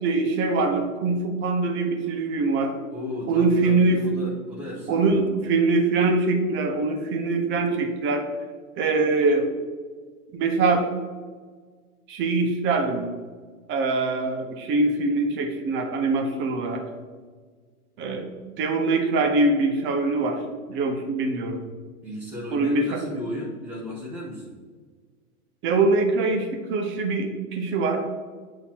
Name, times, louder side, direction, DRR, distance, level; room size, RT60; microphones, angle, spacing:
voice 1, 0.0-2.8 3.3-4.1 4.9-8.3 8.8-9.5 10.3-10.9 12.1-13.1 13.7-16.8 18.0-18.3 18.6-20.4 20.7-21.6 22.5-23.0 25.6-28.0, right 3 dB, 25° right, 4 dB, 0.7 m, -23 dB
voice 2, 2.9-5.0 22.0-24.5, left 1 dB, 5° right, -8 dB, 0.4 m, -34 dB
8.1 x 2.8 x 4.2 m, 1.5 s
hypercardioid pair, 115°, 45 cm